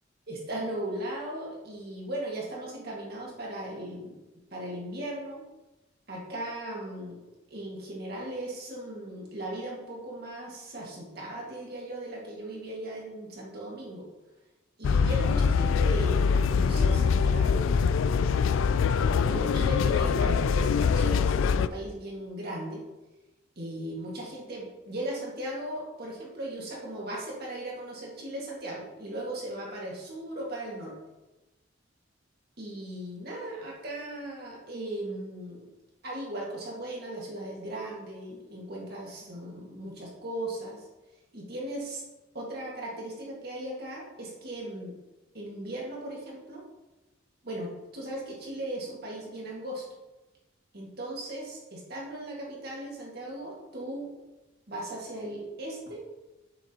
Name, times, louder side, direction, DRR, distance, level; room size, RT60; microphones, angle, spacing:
voice 1, 0.3-4.2 4.5-5.4 6.1-14.1 14.8-17.7 19.0-22.9 23.6-31.0 32.6-35.7 36.0-40.9 41.3-42.0 42.3-45.0 45.3-46.7 47.4-49.8 50.7-54.1 54.7-56.1, right 1 dB, 55° right, -3 dB, 1.9 m, -37 dB
sound 1, 14.8-21.7, left 6 dB, 85° left, 0.3 m, -24 dB
7.7 x 7.2 x 2.9 m, 1.1 s
head